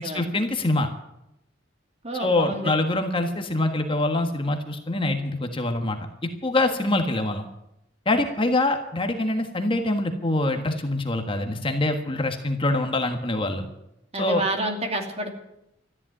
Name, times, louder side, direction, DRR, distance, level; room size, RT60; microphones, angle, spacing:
voice 1, 0.0-0.9 2.2-6.0 6.4-7.4 8.0-13.7 14.2-14.4, left 2 dB, 30° left, 5 dB, 1.5 m, -24 dB
voice 2, 2.0-2.7 14.1-15.3, right 1 dB, 35° right, 3 dB, 2.6 m, -28 dB
14.0 x 10.5 x 9.8 m, 0.84 s
head